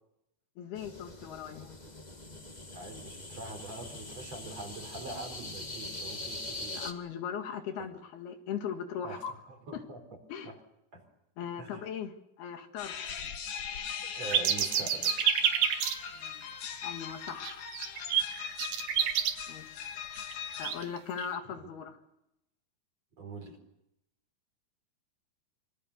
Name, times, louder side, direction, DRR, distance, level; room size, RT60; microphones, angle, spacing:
voice 1, 0.6-1.8 6.7-9.4 9.7-9.8 10.3-10.5 11.4-12.1 12.4-12.9 16.1-16.5 16.8-17.7 19.5-19.9 20.6-22.0, left 8 dB, 70° left, 5 dB, 3.9 m, -39 dB
sound 1, 0.7-6.9, left 2 dB, 35° left, 0.6 m, -42 dB
voice 2, 2.7-6.8 7.8-7.9 9.0-10.2 10.4-10.5 10.9-11.0 11.6-11.9 14.0-15.2 21.4-21.7 23.2-23.6, right 3 dB, 40° right, 6 dB, 5.0 m, -44 dB
sound 2, 12.8-20.9, left 7 dB, 90° left, 4.7 m, -40 dB
sound 3, 14.3-15.9 16.8-16.9 17.3-19.3 20.3-20.4 20.6-21.4, right 9 dB, 75° right, 3.8 m, -28 dB
26.0 x 25.0 x 6.7 m, 0.84 s
omnidirectional pair, 4.7 m